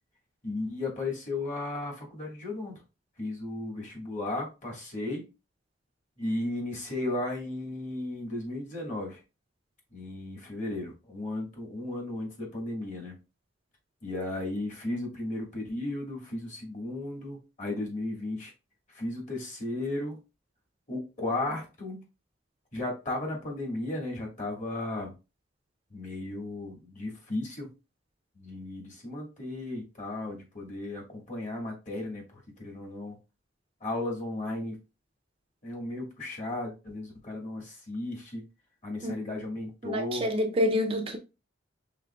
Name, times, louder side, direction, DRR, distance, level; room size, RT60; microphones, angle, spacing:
voice 1, 0.4-2.8 3.2-5.3 6.2-9.2 9.9-13.1 14.0-18.5 18.9-20.2 20.9-22.0 22.7-25.1 25.9-27.7 28.3-33.2 33.8-34.8 35.6-38.4 38.8-40.3, left 2 dB, 40° left, 1.5 m, -35 dB
voice 2, 39.8-41.2, left 1 dB, 30° right, 0.5 m, -27 dB
4.9 x 3.5 x 2.2 m
head